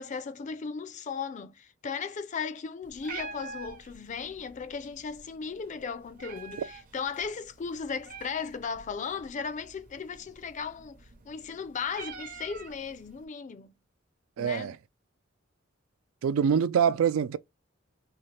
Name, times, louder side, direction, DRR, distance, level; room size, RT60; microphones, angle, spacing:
voice 1, 0.0-13.7 14.4-14.7, left 5 dB, 35° left, 0.4 m, -36 dB
Meow, 2.8-13.2, right 4 dB, 45° right, 0.7 m, -47 dB
voice 2, 14.4-14.8 16.2-17.4, right 7 dB, 90° right, 0.3 m, -25 dB
2.8 x 2.3 x 3.2 m
head